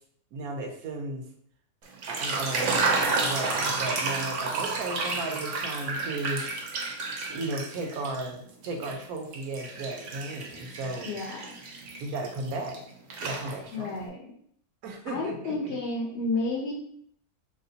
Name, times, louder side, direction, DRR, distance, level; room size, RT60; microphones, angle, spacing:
voice 1, 0.3-1.3 2.0-6.4 7.3-11.1 12.0-12.8 13.2-14.0 14.8-15.8, right 2 dB, 85° right, 3 dB, 1.1 m, -35 dB
sound 1, 1.9-8.3 8.6-12.8 13.1-13.9, right 3 dB, 65° right, 0.8 m, -31 dB
voice 2, 11.1-11.5 13.7-14.3 15.1-16.7, left 2 dB, 65° left, -1 dB, 0.7 m, -31 dB
3.0 x 2.9 x 2.7 m, 0.65 s
omnidirectional pair, 1.6 m